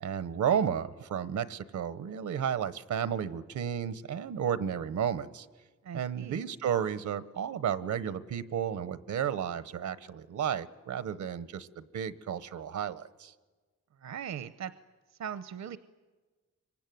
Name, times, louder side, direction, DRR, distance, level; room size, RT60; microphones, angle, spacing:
voice 1, 0.0-5.5 5.9-13.3, right 8 dB, 90° right, 15 dB, 1.1 m, -32 dB
voice 2, 5.8-6.4 14.0-14.7 15.1-15.8, right 8 dB, 70° right, 13 dB, 0.8 m, -39 dB
25.5 x 24.0 x 9.4 m, 1.4 s
cardioid pair, 100°, 29 cm